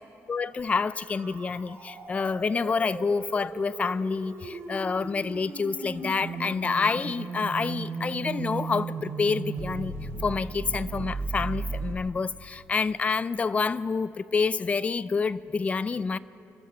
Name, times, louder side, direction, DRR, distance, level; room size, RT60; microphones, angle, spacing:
voice 1, 0.3-9.9 10.2-16.2, left 4 dB, 25° left, 0.4 m, -28 dB
sound 1, 0.8-11.9, right 4 dB, 55° right, 2.7 m, -36 dB
29.0 x 14.5 x 6.3 m
cardioid pair, 160°, 5 cm